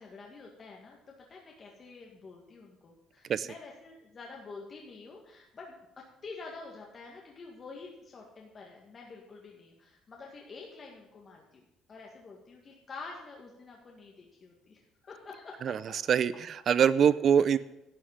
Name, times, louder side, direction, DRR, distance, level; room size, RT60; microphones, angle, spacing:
voice 1, 0.0-5.8 6.2-15.8 17.4-17.6, left 4 dB, 35° left, -1 dB, 2.0 m, -48 dB
voice 2, 15.6-17.6, right 8 dB, 45° right, 17 dB, 0.6 m, -24 dB
12.5 x 6.5 x 9.6 m, 0.88 s
cardioid pair, 130°, 0 cm